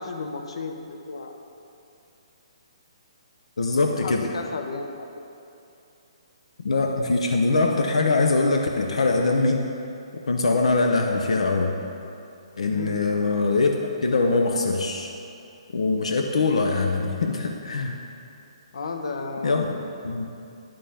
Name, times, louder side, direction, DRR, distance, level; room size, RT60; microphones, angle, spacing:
voice 1, 0.0-1.4 4.0-5.1 12.7-13.0 18.7-19.7, left 4 dB, 70° left, 4 dB, 0.9 m, -33 dB
voice 2, 3.6-4.2 6.6-9.6 10.3-11.7 12.6-13.7 14.0-15.1 15.7-18.0 19.4-19.8 20.0-20.3, left 3 dB, 90° left, 3 dB, 0.8 m, -22 dB
10.5 x 5.3 x 5.7 m, 2.7 s
hypercardioid pair, 170°, 3 cm